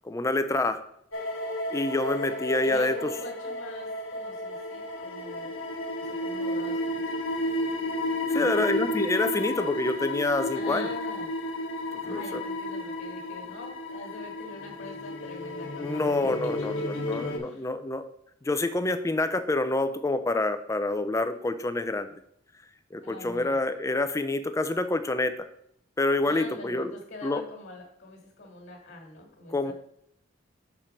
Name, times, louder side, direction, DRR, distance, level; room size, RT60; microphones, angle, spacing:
voice 1, 0.0-0.8 1.7-3.1 8.3-10.9 12.0-12.4 15.8-16.7 17.1-18.0 18.4-22.1 22.9-25.5 26.0-27.0 27.2-27.4 29.5-29.7, left 2 dB, 15° left, 10 dB, 0.4 m, -27 dB
sound 1, 1.1-17.4, left 1 dB, 75° left, 1.0 m, -32 dB
voice 2, 2.6-5.5 6.0-7.3 8.3-8.7 10.5-11.3 12.0-17.7 23.0-23.6 26.2-29.7, left 2 dB, 55° left, 0 dB, 1.5 m, -43 dB
5.9 x 4.3 x 5.0 m, 0.71 s
head